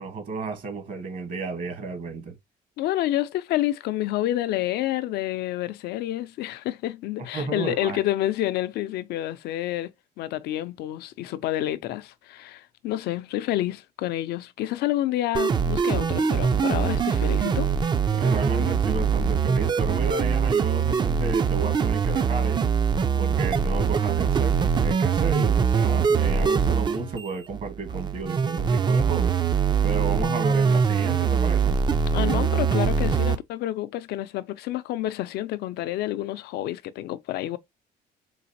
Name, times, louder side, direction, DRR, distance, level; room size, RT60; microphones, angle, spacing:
voice 1, 0.0-2.4 7.2-8.0 18.1-22.6 23.2-29.3 29.8-31.8, right 3 dB, 55° right, 1.2 m, -32 dB
voice 2, 2.8-17.7 32.1-37.6, left 14 dB, 75° left, 0.4 m, -29 dB
sound 1, 15.3-33.4, right 6 dB, 25° right, 0.4 m, -23 dB
3.9 x 2.5 x 2.7 m
cardioid pair, 110°, 17 cm